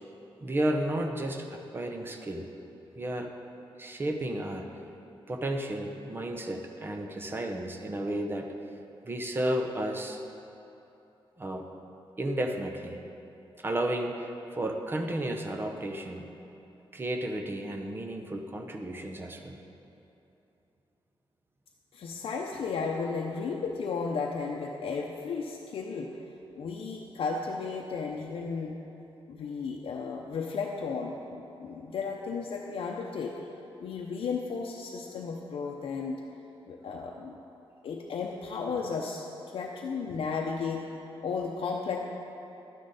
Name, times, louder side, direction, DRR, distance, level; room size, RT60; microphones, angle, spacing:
voice 1, 0.4-2.5 3.0-3.3 3.8-4.7 5.3-8.5 9.0-10.2 11.4-11.7 12.2-13.0 13.6-16.3 16.9-19.6, right 1 dB, 25° right, 4 dB, 0.7 m, -32 dB
voice 2, 21.9-26.1 26.5-28.8 29.3-33.4 33.8-36.2 36.7-37.4 37.8-39.3 39.5-40.9 41.2-42.0, left 5 dB, 70° left, 0 dB, 0.7 m, -34 dB
12.0 x 10.0 x 4.1 m, 2.9 s
wide cardioid pair, 170°, 10 cm